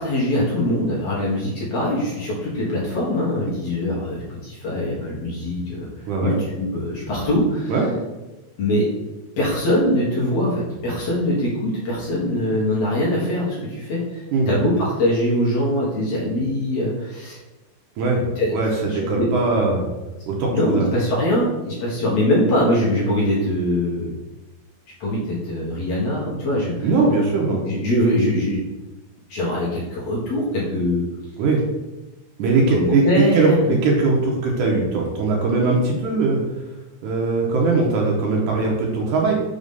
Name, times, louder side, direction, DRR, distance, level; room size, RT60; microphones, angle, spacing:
voice 1, 0.0-5.9 6.2-7.8 8.6-8.9 9.4-17.4 18.4-18.5 18.9-19.3 20.5-24.1 25.0-26.9 27.6-28.6 29.3-31.1 32.7-33.6, left 1 dB, 55° left, -6 dB, 2.0 m, -22 dB
voice 2, 18.5-19.9 20.3-20.9 26.8-27.7 31.4-31.6 32.4-33.0 33.3-36.4 37.0-39.3, right 3 dB, 70° right, -1 dB, 2.2 m, -20 dB
6.4 x 3.0 x 5.3 m, 1.1 s
omnidirectional pair, 4.0 m